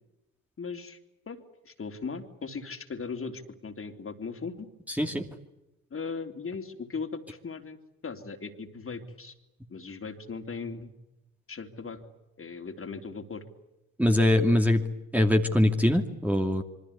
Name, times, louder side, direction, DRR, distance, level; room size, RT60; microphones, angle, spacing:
voice 1, 0.6-1.0 1.3-4.7 5.9-7.8 8.0-9.3 9.7-10.9 11.5-12.0 12.4-13.4, left 4 dB, 30° left, 6 dB, 3.5 m, -38 dB
voice 2, 4.9-5.3 14.0-14.8 15.1-16.6, left 1 dB, 5° right, 2 dB, 2.7 m, -23 dB
27.0 x 23.5 x 8.4 m, 0.97 s
hypercardioid pair, 55°, 42 cm